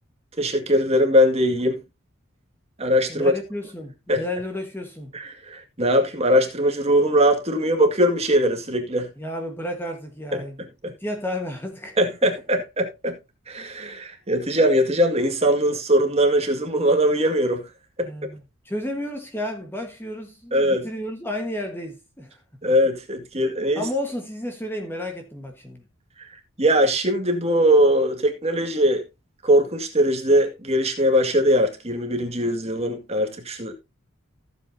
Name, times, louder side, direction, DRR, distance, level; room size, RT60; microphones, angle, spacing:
voice 1, 0.4-1.8 2.8-3.3 4.1-4.2 5.1-9.1 10.3-10.4 12.0-13.1 13.5-17.7 18.0-18.1 20.5-20.9 22.6-23.8 26.2-26.3 26.6-29.0 29.4-33.7, equal, 30° right, 2.0 m, -21 dB
voice 2, 3.1-5.1 9.2-12.3 18.0-18.4 18.6-22.4 23.8-25.8, left 1 dB, 10° left, 1.5 m, -32 dB
15.0 x 7.8 x 2.8 m
head